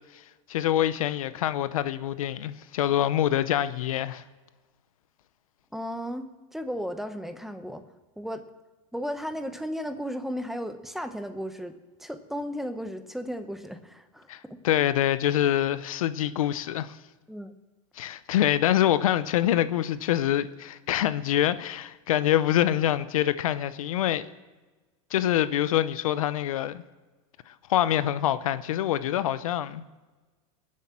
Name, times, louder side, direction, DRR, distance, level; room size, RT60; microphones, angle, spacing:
voice 1, 0.5-4.2 14.3-17.0 18.0-24.3 25.1-26.8 27.5-29.8, left 12 dB, 90° left, 0.7 m, -25 dB
voice 2, 5.7-7.8 8.2-8.4 8.9-14.6 17.3-17.5, equal, ahead, 0.8 m, -35 dB
20.5 x 7.5 x 7.5 m
supercardioid pair, 140°, 17 cm